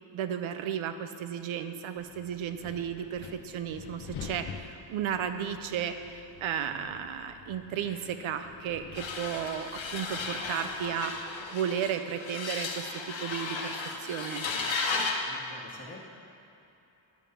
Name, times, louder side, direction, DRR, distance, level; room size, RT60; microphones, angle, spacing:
voice 1, 0.1-14.5, right 8 dB, 85° right, 9 dB, 0.6 m, -34 dB
Wind, 2.0-11.5, left 6 dB, 55° left, 0.7 m, -48 dB
sound 1, 8.9-15.3, left 4 dB, 75° left, 1.0 m, -34 dB
voice 2, 15.2-16.0, left 2 dB, 30° left, -3 dB, 1.4 m, -47 dB
10.5 x 3.7 x 6.8 m, 2.9 s
wide cardioid pair, 110°, 47 cm